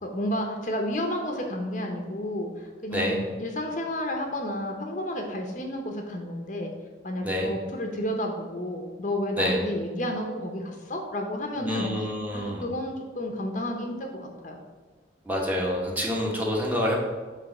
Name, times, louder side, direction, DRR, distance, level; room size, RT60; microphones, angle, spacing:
voice 1, 0.0-6.7 7.0-11.9 12.3-14.6, left 1 dB, 40° left, 3 dB, 0.8 m, -31 dB
voice 2, 11.5-12.6 15.2-17.0, equal, 10° right, -2 dB, 1.2 m, -27 dB
8.5 x 3.4 x 5.9 m, 1.4 s
head